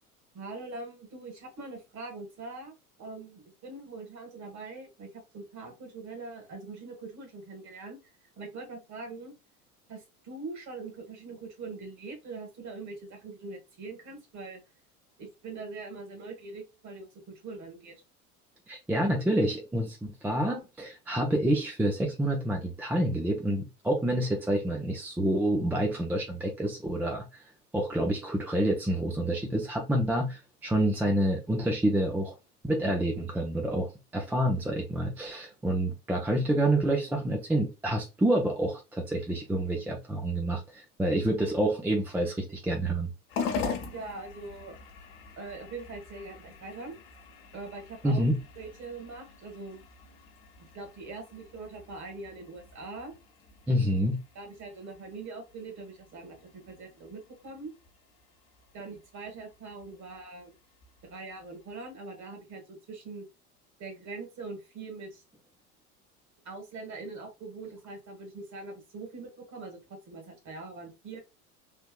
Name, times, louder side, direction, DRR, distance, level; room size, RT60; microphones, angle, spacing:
voice 1, 0.3-5.1 5.3-8.0 8.4-9.3 9.9-14.6 15.2-17.9 43.9-44.8 45.4-46.9 47.5-48.3 48.6-49.8 50.6-53.1 54.3-57.7 58.7-60.5 61.0-63.2 63.8-65.2 66.4-71.2, right 3 dB, 40° right, 1.6 m, -42 dB
voice 2, 18.7-27.4 27.7-32.3 32.6-43.1 48.0-48.4 53.7-54.2, right 1 dB, 5° right, 0.4 m, -28 dB
sound 1, 43.3-61.9, left 5 dB, 60° left, 1.1 m, -43 dB
3.4 x 2.7 x 2.2 m
hypercardioid pair, 80°, 45 cm